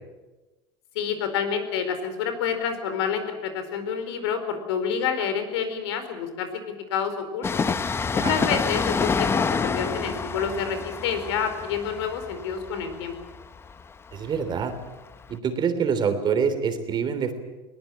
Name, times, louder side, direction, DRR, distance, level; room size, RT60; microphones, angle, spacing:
voice 1, 0.9-7.6 8.1-13.1, left 7 dB, 85° left, 9 dB, 4.5 m, -28 dB
Train, 7.4-14.9 15.1-15.2, left 5 dB, 20° left, 0.9 m, -28 dB
voice 2, 8.2-8.5 14.1-14.7 15.3-17.3, right 6 dB, 35° right, 8 dB, 3.2 m, -26 dB
22.0 x 19.0 x 8.7 m, 1.2 s
supercardioid pair, 125°, 14 cm